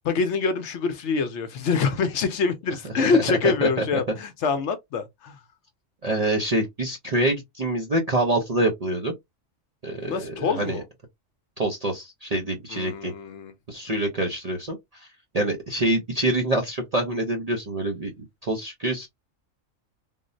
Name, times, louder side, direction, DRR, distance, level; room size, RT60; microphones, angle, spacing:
voice 1, 0.1-5.4 10.0-10.8 12.7-13.5, left 5 dB, 65° left, 0.8 m, -25 dB
voice 2, 3.0-4.0 6.0-9.1 9.8-10.8 11.6-13.1 13.7-15.1 15.3-19.1, right 1 dB, 50° right, 0.4 m, -26 dB
3.6 x 2.0 x 2.5 m
omnidirectional pair, 1.4 m